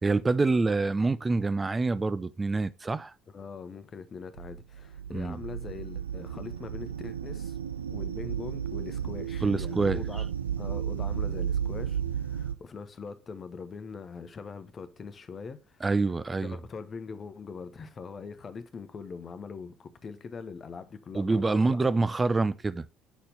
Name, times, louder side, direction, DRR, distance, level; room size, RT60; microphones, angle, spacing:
voice 1, 0.0-3.1 5.1-5.4 9.4-10.0 15.8-16.6 21.1-22.9, right 3 dB, 20° right, 0.6 m, -26 dB
voice 2, 3.3-7.6 7.9-10.3 10.6-15.9 16.4-21.8, left 5 dB, 35° left, 1.0 m, -42 dB
sound 1, 4.4-12.5, right 8 dB, 85° right, 0.4 m, -33 dB
8.3 x 4.3 x 5.1 m
figure-of-eight pair, 55°, 0 cm